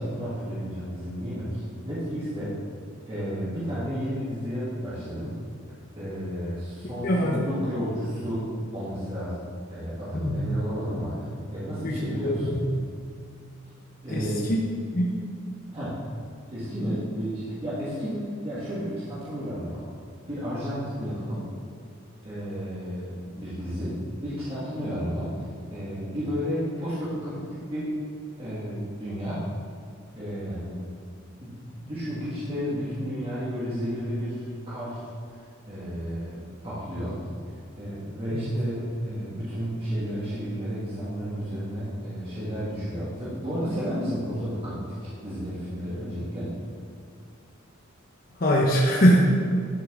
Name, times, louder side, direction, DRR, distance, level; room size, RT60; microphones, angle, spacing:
voice 1, 0.0-2.6 3.1-5.3 5.9-9.4 9.7-12.6 14.0-14.5 15.7-16.1 16.5-19.8 20.3-21.4 22.2-28.0 28.4-29.4 30.1-30.8 31.4-46.5, equal, 25° right, -10 dB, 1.5 m, -32 dB
voice 2, 7.0-7.5 10.1-10.5 11.8-12.7 14.2-14.6 14.9-15.1 38.3-38.5 48.4-49.2, equal, 45° left, -2 dB, 0.8 m, -23 dB
10.5 x 6.0 x 3.6 m, 2.3 s
head